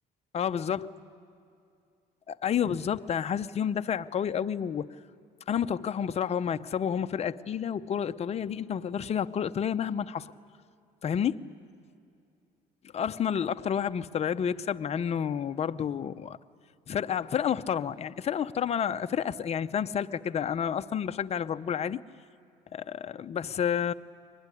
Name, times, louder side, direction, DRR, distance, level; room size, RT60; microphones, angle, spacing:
voice 1, 0.3-0.9 2.3-4.9 5.5-10.3 11.0-11.4 12.9-16.4 16.9-22.0 22.7-23.9, left 8 dB, 40° left, 10 dB, 0.7 m, -30 dB
23.5 x 20.5 x 10.0 m, 2.5 s
cardioid pair, 110°, 17 cm